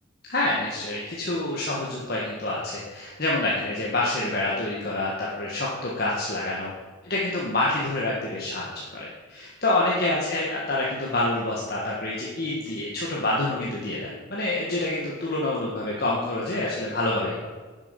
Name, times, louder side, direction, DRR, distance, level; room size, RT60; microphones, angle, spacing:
voice 1, 0.3-6.7 7.0-17.5, left 2 dB, 45° left, -5 dB, 1.6 m, -27 dB
10.5 x 7.4 x 5.3 m, 1.4 s
head